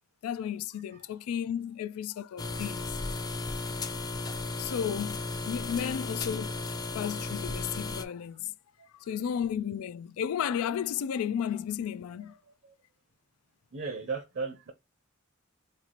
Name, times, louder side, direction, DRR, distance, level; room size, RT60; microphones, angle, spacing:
voice 1, 0.2-2.9 4.6-5.2 5.5-6.6 6.9-8.5 9.1-12.3, left 8 dB, 90° left, 0.3 m, -33 dB
sound 1, 2.4-8.0, left 3 dB, 20° left, 0.4 m, -35 dB
voice 2, 8.8-9.1 12.1-12.7 13.7-14.7, right 4 dB, 55° right, 0.7 m, -39 dB
4.3 x 2.5 x 2.8 m
head